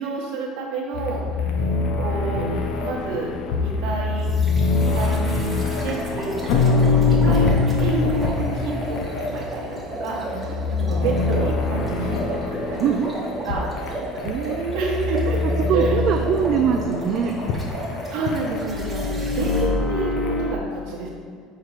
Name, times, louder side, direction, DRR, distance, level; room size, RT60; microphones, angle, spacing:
voice 1, 0.0-1.4 2.0-2.5 2.8-4.3 4.7-5.4 5.8-7.5 7.8-10.5 10.8-12.8 13.4-14.0 14.7-15.4 15.7-16.1 18.1-21.1, right 3 dB, 65° right, -4 dB, 1.2 m, -29 dB
sound 1, 0.9-20.6, left 3 dB, 65° left, 0.7 m, -24 dB
sound 2, 4.2-19.6, right 1 dB, 5° right, 1.1 m, -34 dB
voice 2, 10.3-11.2 12.7-13.2 13.9-14.0 14.2-15.3 15.7-17.6, right 7 dB, 45° right, 3 dB, 0.4 m, -24 dB
5.8 x 4.6 x 4.9 m, 2.1 s
cardioid pair, 165°, 0 cm